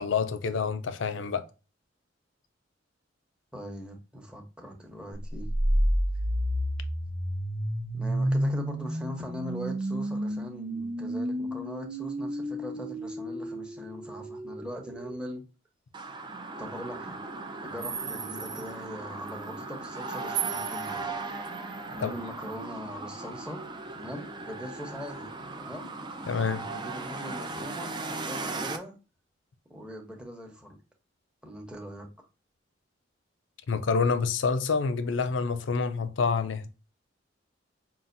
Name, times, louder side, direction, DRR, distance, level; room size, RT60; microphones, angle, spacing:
voice 1, 0.0-1.4 22.0-22.1 26.3-26.7 33.7-36.7, left 5 dB, 80° left, 0.5 m, -27 dB
voice 2, 3.5-5.5 7.9-15.4 16.6-17.2 17.6-21.2 21.9-23.6 23.9-25.3 25.6-25.9 26.6-29.0 29.7-30.7 31.4-32.3, equal, 5° right, 0.9 m, -41 dB
sound 1, 5.3-15.2, equal, 90° right, 0.9 m, -30 dB
sound 2, 15.9-28.8, right 4 dB, 25° right, 0.4 m, -37 dB
5.5 x 2.5 x 2.5 m
head